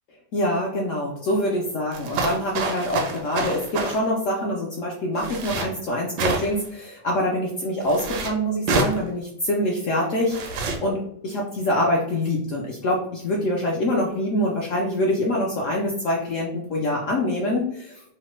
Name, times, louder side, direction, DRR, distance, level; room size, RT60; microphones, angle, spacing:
voice 1, 0.3-17.9, left 1 dB, 70° left, -3 dB, 0.7 m, -25 dB
sound 1, 1.9-4.0 5.2-5.7 6.2-6.7 7.8-8.3 8.7-9.0 10.3-10.8, right 3 dB, 80° right, 1.1 m, -27 dB
3.1 x 2.1 x 3.0 m, 0.69 s
omnidirectional pair, 1.8 m